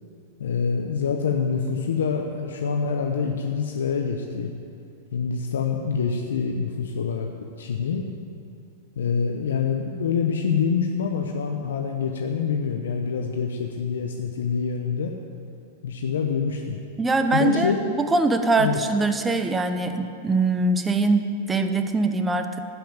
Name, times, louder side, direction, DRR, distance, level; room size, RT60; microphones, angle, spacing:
voice 1, 0.4-4.5 5.1-7.3 7.6-8.1 9.0-15.1 15.8-16.8 17.3-17.8 18.6-18.8, left 6 dB, 80° left, 3 dB, 0.8 m, -26 dB
voice 2, 17.0-22.6, right 3 dB, 15° right, 7 dB, 0.9 m, -23 dB
13.0 x 5.8 x 8.8 m, 2.6 s
hypercardioid pair, 115°, 0 cm